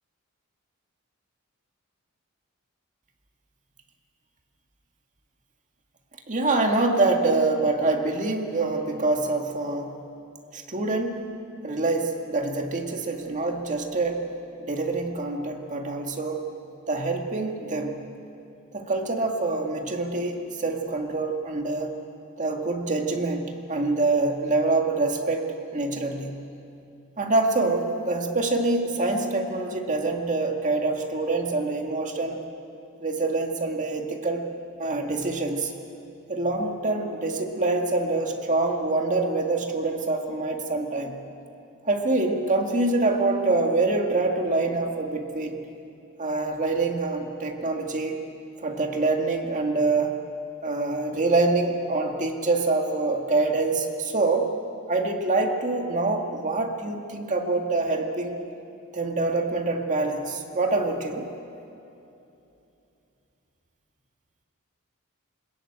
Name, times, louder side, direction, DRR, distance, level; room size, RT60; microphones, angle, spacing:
voice 1, 6.3-10.0 10.5-11.3 11.6-14.3 14.6-16.5 16.9-18.0 18.7-22.0 22.4-26.4 27.2-32.4 33.0-34.5 34.8-35.7 36.3-41.2 41.8-45.7 46.2-48.3 48.6-50.2 50.6-54.6 54.9-58.4 58.9-61.3, right 3 dB, 35° right, 3 dB, 2.0 m, -25 dB
21.5 x 21.0 x 8.9 m, 2.8 s
head